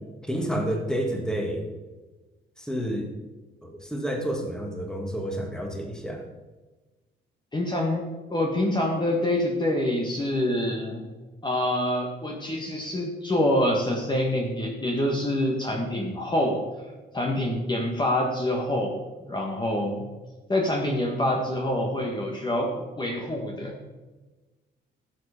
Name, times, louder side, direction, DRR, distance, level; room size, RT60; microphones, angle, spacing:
voice 1, 0.2-1.6 2.6-3.1 3.6-6.3, equal, 5° left, 2 dB, 2.2 m, -29 dB
voice 2, 7.5-8.0 8.3-11.0 11.4-16.6 17.1-19.0 19.3-20.1 20.5-22.7 23.0-23.7, left 1 dB, 20° left, 0 dB, 1.8 m, -26 dB
11.5 x 7.4 x 5.2 m, 1.2 s
cardioid pair, 90°, 20 cm